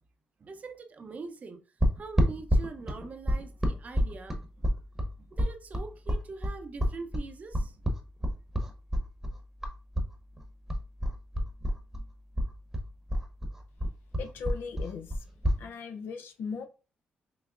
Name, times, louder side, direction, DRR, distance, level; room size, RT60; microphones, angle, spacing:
voice 1, 0.4-1.6 2.0-4.4 5.2-7.8 8.2-8.3, right 4 dB, 45° right, 0.6 m, -43 dB
sound 1, 1.8-10.1 10.4-12.1 12.3-15.6, equal, 10° right, 0.9 m, -28 dB
voice 2, 14.2-15.2 15.6-16.7, left 5 dB, 75° left, 0.5 m, -38 dB
5.8 x 2.0 x 2.4 m
supercardioid pair, 60°, 3 cm